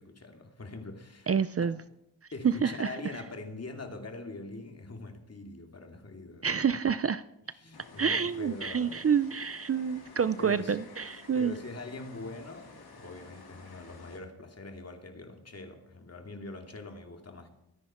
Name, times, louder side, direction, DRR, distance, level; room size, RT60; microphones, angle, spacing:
voice 1, 0.0-1.3 1.6-1.8 2.3-6.7 7.6-9.1 10.4-10.8 11.3-17.5, left 2 dB, 40° left, 3 dB, 2.5 m, -43 dB
voice 2, 1.3-1.8 2.4-3.0 6.4-7.2 8.0-11.5, right 7 dB, 40° right, 14 dB, 0.5 m, -28 dB
sound 1, 7.7-14.2, left 3 dB, 80° left, 2.7 m, -52 dB
23.0 x 10.0 x 4.4 m, 0.81 s
wide cardioid pair, 85°, 37 cm